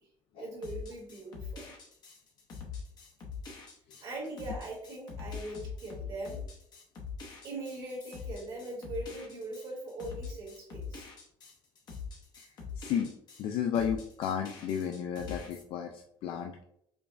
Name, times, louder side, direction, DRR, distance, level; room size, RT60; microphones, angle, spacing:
voice 1, 0.3-1.7 4.0-6.4 7.4-11.1, right 2 dB, 55° right, -3 dB, 1.4 m, -41 dB
sound 1, 0.6-13.5 13.7-15.6, left 5 dB, 45° left, 0.9 m, -43 dB
voice 2, 12.8-13.1 13.4-16.6, left 8 dB, 65° left, 4 dB, 0.3 m, -33 dB
5.1 x 2.3 x 2.5 m, 0.72 s
cardioid pair, 155°, 10 cm